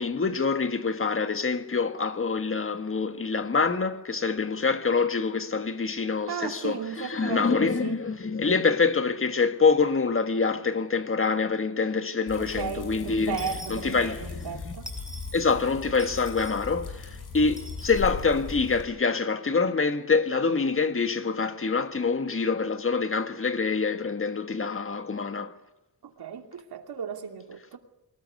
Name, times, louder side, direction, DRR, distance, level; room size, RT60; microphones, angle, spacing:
voice 1, 0.0-14.7 15.3-25.5, left 4 dB, 35° left, 1.6 m, -26 dB
voice 2, 6.3-8.0 12.4-14.9 26.0-27.8, right 7 dB, 80° right, 2.8 m, -35 dB
sound 1, 12.3-18.8, left 4 dB, 90° left, 7.9 m, -39 dB
Dishes pots and pans / Coin (dropping), 13.4-14.5 14.9-15.4 16.0-16.7 17.6-18.1, right 1 dB, ahead, 5.4 m, -43 dB
23.5 x 20.0 x 9.5 m
wide cardioid pair, 155°, 38 cm